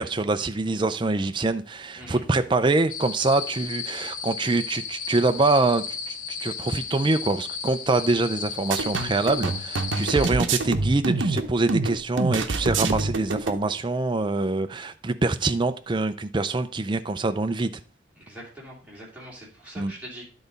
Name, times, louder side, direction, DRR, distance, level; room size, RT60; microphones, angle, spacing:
voice 1, 0.0-17.7 19.8-19.9, right 3 dB, 25° right, 0.4 m, -25 dB
sound 1, 2.9-10.3, left 6 dB, 45° left, 0.8 m, -34 dB
sound 2, 8.7-13.6, right 3 dB, 75° right, 0.8 m, -26 dB
voice 2, 9.9-10.2 18.2-20.3, right 1 dB, 10° right, 2.9 m, -43 dB
10.5 x 4.1 x 5.1 m
head